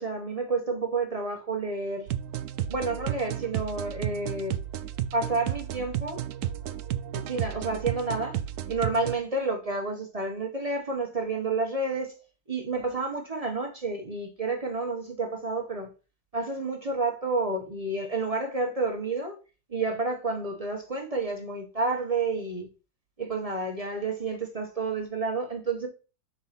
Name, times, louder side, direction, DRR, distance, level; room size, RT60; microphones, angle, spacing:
voice 1, 0.0-2.1 2.7-4.6 5.1-6.2 7.1-8.4 8.7-12.1 12.5-15.9 16.3-19.4 19.7-22.7 23.2-25.9, right 3 dB, 30° right, 0.7 m, -30 dB
sound 1, 2.1-9.2, right 11 dB, 75° right, 0.9 m, -33 dB
5.5 x 4.1 x 5.7 m
omnidirectional pair, 2.1 m